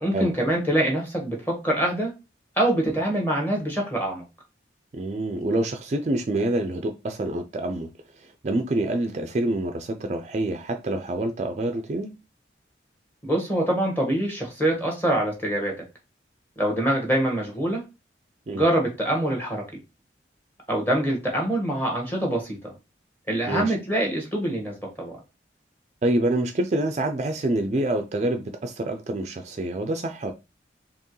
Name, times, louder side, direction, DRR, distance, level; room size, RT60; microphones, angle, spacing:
voice 1, 0.0-2.1 2.6-4.2 13.2-15.8 16.6-17.8 18.5-19.6 20.7-22.7 23.3-25.1, right 1 dB, 10° left, 1.4 m, -24 dB
voice 2, 4.9-7.9 8.2-12.1 18.5-18.7 23.5-23.7 26.0-30.3, right 1 dB, 40° right, 0.4 m, -26 dB
4.4 x 2.9 x 3.1 m
head